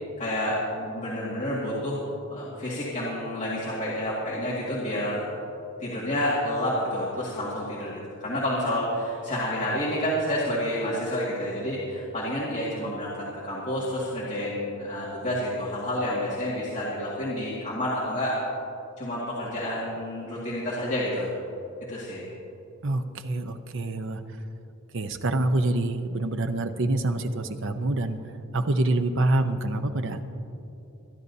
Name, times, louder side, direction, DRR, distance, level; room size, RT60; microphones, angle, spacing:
voice 1, 0.2-5.3 5.8-18.4 19.0-21.3 21.9-22.2, left 1 dB, 35° left, -8 dB, 2.1 m, -29 dB
voice 2, 22.8-24.2 24.9-28.2 28.5-30.2, right 2 dB, 60° right, 8 dB, 0.7 m, -26 dB
24.0 x 11.5 x 2.8 m, 2.8 s
head